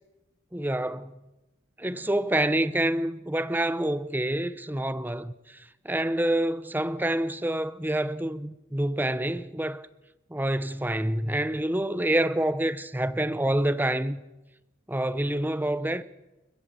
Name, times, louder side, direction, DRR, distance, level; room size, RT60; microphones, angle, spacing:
voice 1, 0.5-1.2 1.8-9.9 10.3-14.2 14.9-16.0, right 1 dB, 10° right, 0.8 m, -27 dB
30.0 x 14.0 x 7.7 m
head